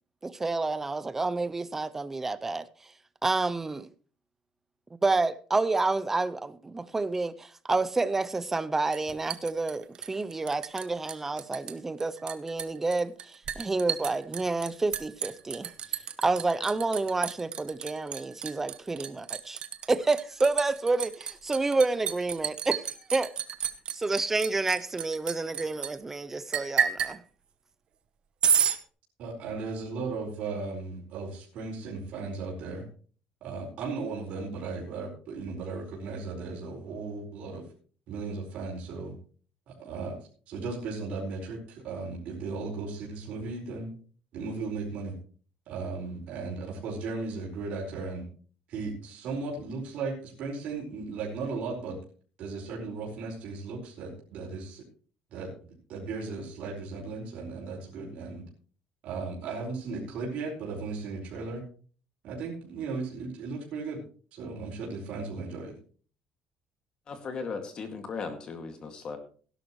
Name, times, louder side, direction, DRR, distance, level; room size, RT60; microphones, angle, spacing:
voice 1, 0.2-2.6 3.2-3.9 5.0-19.6 19.9-22.8 23.1-23.3 23.9-27.2, right 3 dB, 15° right, 0.5 m, -29 dB
Liquid, 8.9-10.8 11.1-11.7 12.0-25.9 26.5-27.1 28.4-28.8, right 8 dB, 40° right, 1.0 m, -31 dB
voice 2, 29.2-32.8 33.4-37.6 38.1-39.1 39.7-43.9 44.3-45.1 45.7-48.2 48.7-52.0 52.4-54.8 55.3-58.4 59.0-61.6 62.2-64.0 64.3-65.7, right 4 dB, 55° right, 4.8 m, -36 dB
voice 3, 67.1-69.2, left 4 dB, 35° left, 2.1 m, -37 dB
17.0 x 11.5 x 3.1 m
cardioid pair, 165°, 3 cm